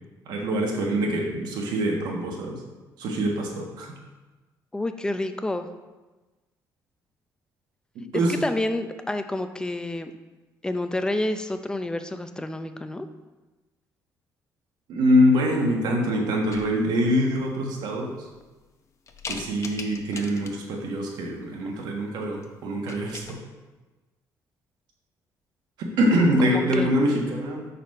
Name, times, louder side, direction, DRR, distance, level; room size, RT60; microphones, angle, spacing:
voice 1, 0.3-2.6 3.0-3.9 8.1-8.4 14.9-18.1 19.3-23.4 25.8-27.7, equal, 80° right, 0 dB, 1.3 m, -24 dB
voice 2, 4.7-5.7 8.4-10.1 10.6-13.1 26.4-26.9, left 1 dB, 10° left, 8 dB, 0.5 m, -29 dB
sound 1, 16.5-17.1 17.7-17.8 18.3-18.7 19.1-20.8 22.2-22.5 22.7-23.3, left 4 dB, 45° left, 0.8 m, -40 dB
5.9 x 4.1 x 5.3 m, 1.2 s
cardioid pair, 105°, 7 cm